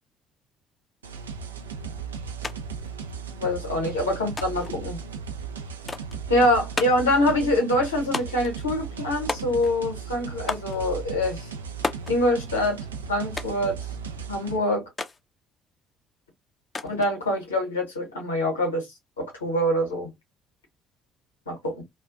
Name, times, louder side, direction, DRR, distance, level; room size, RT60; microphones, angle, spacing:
sound 1, 1.0-14.6, right 6 dB, 80° right, 0.3 m, -36 dB
sound 2, 2.4-2.6 2.8-3.6 4.4-4.8 5.9-6.2 6.8-7.1 8.1-8.5 9.3-9.8 10.5-10.8 11.8-12.2 13.4-13.7 15.0-15.2 16.7-17.1, left 3 dB, 30° left, 0.4 m, -32 dB
voice 1, 3.4-5.0 6.3-11.5 12.1-13.8 14.3-14.9 16.8-18.9 19.2-20.1 21.5-21.8, left 1 dB, 80° left, 0.9 m, -25 dB
2.3 x 2.2 x 2.4 m
figure-of-eight pair, 50°, 0 cm